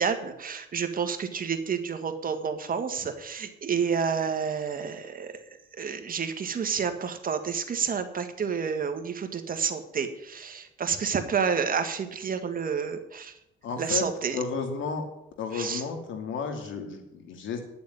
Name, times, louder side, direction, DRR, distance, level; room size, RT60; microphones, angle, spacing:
voice 1, 0.0-5.3 5.7-13.3 13.8-14.4 15.5-15.8, right 6 dB, 45° right, 7 dB, 1.7 m, -29 dB
voice 2, 13.6-14.1 14.3-15.0 15.4-17.6, left 5 dB, 75° left, 5 dB, 2.7 m, -32 dB
10.5 x 7.0 x 9.4 m, 0.85 s
cardioid pair, 90°, 20 cm